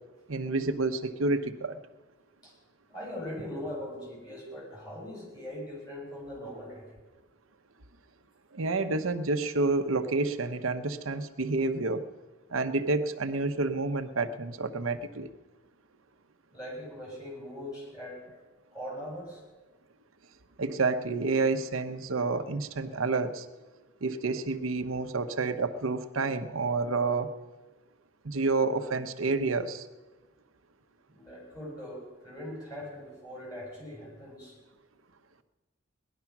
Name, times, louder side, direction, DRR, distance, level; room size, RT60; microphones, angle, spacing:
voice 1, 0.3-1.8 8.5-12.0 12.5-15.3 20.6-23.5 24.0-27.3 28.2-29.9, right 3 dB, 90° right, 8 dB, 0.9 m, -29 dB
voice 2, 2.9-6.8 16.5-18.2 18.7-19.4 31.1-34.6, left 1 dB, 20° left, -4 dB, 7.2 m, -41 dB
18.5 x 11.5 x 6.0 m, 1.2 s
head